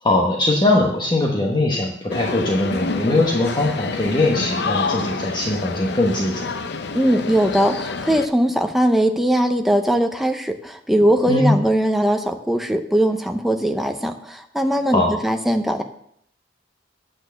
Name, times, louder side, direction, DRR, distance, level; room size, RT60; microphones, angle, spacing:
voice 1, 0.0-6.5 11.2-11.6 14.9-15.1, left 2 dB, 25° left, -1 dB, 1.2 m, -20 dB
sound 1, 2.1-8.3, left 4 dB, 65° left, 0.7 m, -28 dB
voice 2, 6.9-15.8, right 1 dB, ahead, 5 dB, 0.8 m, -20 dB
9.0 x 6.4 x 7.0 m, 0.70 s
head